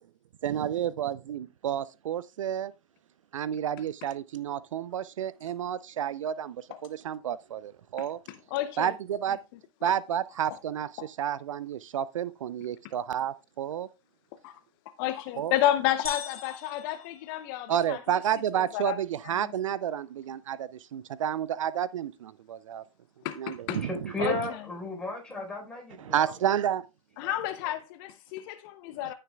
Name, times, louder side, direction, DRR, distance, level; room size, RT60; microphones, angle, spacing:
voice 1, 0.4-2.7 3.3-8.2 8.8-9.4 9.8-13.9 15.4-15.5 17.7-22.8 23.4-24.1 26.0-26.8, right 10 dB, 65° right, 0.4 m, -30 dB
voice 2, 8.5-8.9 11.0-11.1 14.4-14.5 15.0-18.0 18.7-19.0 19.2-19.4 23.2-23.8 24.2-24.3 27.2-29.1, left 13 dB, 40° left, 0.7 m, -30 dB
sound 1, 16.0-18.0, left 6 dB, 85° left, 1.6 m, -41 dB
voice 3, 23.8-26.3 27.2-27.3, left 1 dB, 5° left, 3.9 m, -35 dB
15.0 x 6.6 x 2.3 m
figure-of-eight pair, 110°, 18 cm